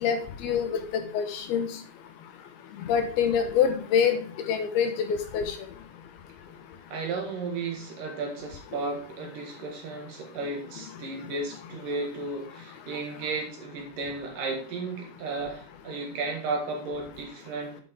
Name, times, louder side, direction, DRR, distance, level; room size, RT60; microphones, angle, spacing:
voice 1, 0.0-1.7 2.9-4.2 4.5-5.6, left 7 dB, 75° left, 7 dB, 2.6 m, -25 dB
voice 2, 6.9-17.8, right 3 dB, 60° right, 2 dB, 3.0 m, -34 dB
9.1 x 8.3 x 3.5 m, 0.42 s
omnidirectional pair, 4.9 m